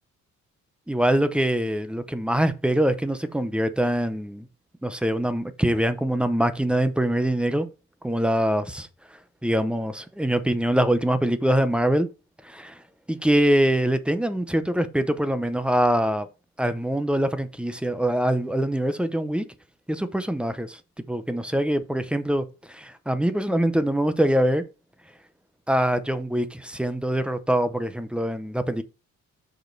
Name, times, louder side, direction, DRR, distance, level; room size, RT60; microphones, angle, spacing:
voice 1, 0.9-4.5 4.8-7.7 8.0-8.9 9.4-12.1 12.4-12.8 13.1-16.3 16.6-19.5 19.9-20.8 21.1-24.6 25.7-28.8, right 1 dB, 5° right, 0.6 m, -24 dB
6.5 x 5.1 x 4.5 m
wide cardioid pair, 160°, 31 cm